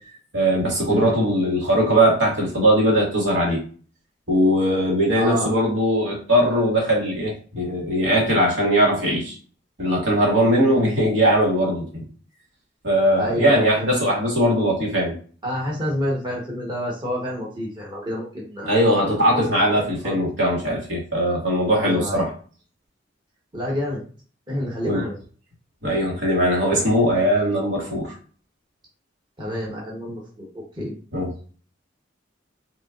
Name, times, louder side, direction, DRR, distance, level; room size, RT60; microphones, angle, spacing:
voice 1, 0.3-3.6 4.3-9.4 9.8-12.0 12.8-15.2 18.6-22.3 24.8-25.0 25.8-28.1 31.1-31.3, equal, 80° right, -3 dB, 2.1 m, -20 dB
voice 2, 5.1-5.5 10.7-10.9 13.2-13.9 15.4-18.8 19.7-20.1 21.7-22.3 23.5-24.0 24.5-25.2 29.4-30.9, equal, 25° right, -3 dB, 1.2 m, -29 dB
6.5 x 2.9 x 2.6 m, 0.41 s
head